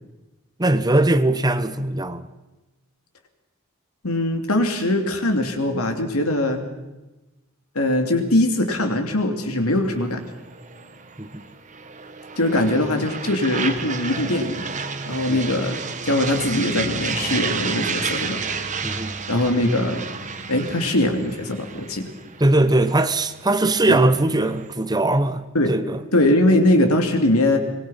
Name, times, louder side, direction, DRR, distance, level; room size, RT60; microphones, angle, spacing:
voice 1, 0.6-2.3 11.2-11.4 15.3-15.4 18.8-19.1 22.4-26.0, right 2 dB, 20° right, 1.0 m, -20 dB
voice 2, 4.0-6.6 7.7-10.2 12.4-14.7 15.1-15.8 16.0-18.4 19.3-20.0 20.5-22.1 23.9-24.0 25.5-25.8 26.1-27.6, left 1 dB, 85° left, 3.0 m, -21 dB
sound 1, 9.9-24.7, right 5 dB, 35° right, 1.6 m, -31 dB
25.0 x 21.5 x 5.8 m
head